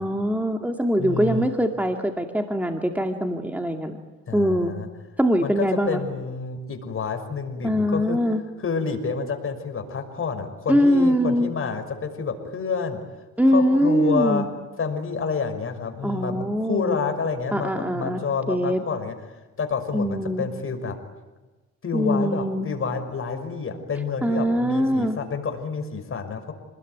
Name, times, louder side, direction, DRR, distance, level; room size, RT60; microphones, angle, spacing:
voice 1, 0.0-4.0 4.3-4.7 5.2-6.0 7.6-8.4 10.7-11.5 13.4-14.5 16.0-17.0 17.5-18.2 18.5-18.8 19.9-20.4 21.9-22.7 24.2-25.2, equal, 5° right, 4 dB, 2.2 m, -22 dB
voice 2, 1.0-1.5 4.3-4.9 5.4-8.2 8.6-13.0 13.5-14.5 14.8-19.2 19.6-21.0 21.8-26.5, left 5 dB, 45° left, 6 dB, 5.9 m, -28 dB
28.5 x 20.5 x 9.5 m, 1.2 s
cardioid pair, 90°, 30 cm